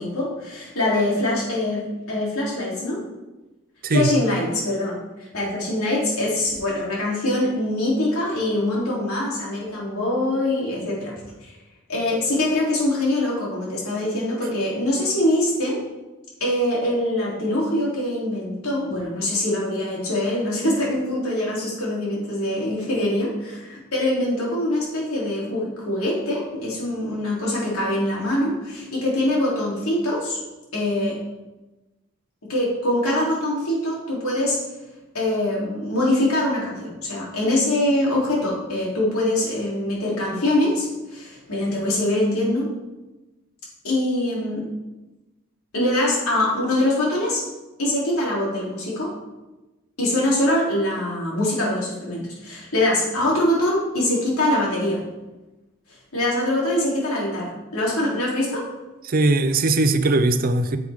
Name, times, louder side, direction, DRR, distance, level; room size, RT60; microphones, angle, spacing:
voice 1, 0.0-3.0 3.9-11.1 11.4-11.5 11.9-15.8 16.4-30.4 30.7-31.2 32.5-34.6 35.1-42.7 43.8-44.6 45.7-47.4 47.8-49.1 50.0-55.0 56.1-58.7, left 1 dB, 75° left, -5 dB, 3.1 m, -23 dB
voice 2, 3.8-4.1 59.0-60.8, right 2 dB, 40° right, 10 dB, 0.5 m, -19 dB
9.6 x 7.7 x 3.6 m, 1.1 s
head